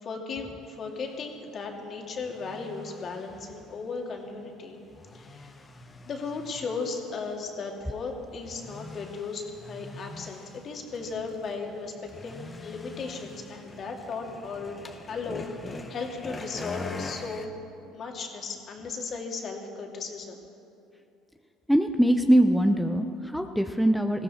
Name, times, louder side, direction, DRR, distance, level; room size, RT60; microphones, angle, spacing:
voice 1, 0.0-4.8 5.1-5.5 6.1-11.9 12.2-14.8 15.1-17.5 17.9-20.4, left 4 dB, 45° left, 2 dB, 2.5 m, -36 dB
sound 1, 0.8-1.0 1.5-1.6 2.2-17.5, left 3 dB, 25° left, 1.5 m, -44 dB
voice 2, 21.7-24.2, right 1 dB, ahead, 5 dB, 0.7 m, -22 dB
19.5 x 15.5 x 4.4 m, 2.6 s
hypercardioid pair, 65°, 0 cm